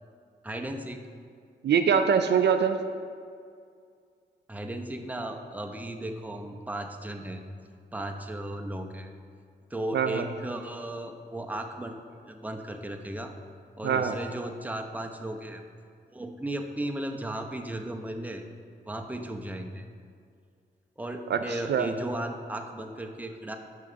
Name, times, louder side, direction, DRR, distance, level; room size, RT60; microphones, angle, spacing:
voice 1, 0.4-1.0 4.5-7.4 7.9-9.1 9.7-12.0 12.2-13.3 13.8-15.6 16.1-18.4 18.9-19.9 21.0-23.6, right 1 dB, 10° right, 4 dB, 0.7 m, -35 dB
voice 2, 1.6-2.8 9.9-10.3 13.8-14.1 21.3-21.4 21.7-21.9, right 7 dB, 65° right, 8 dB, 0.4 m, -23 dB
6.4 x 3.9 x 6.3 m, 2.2 s
supercardioid pair, 45°, 20 cm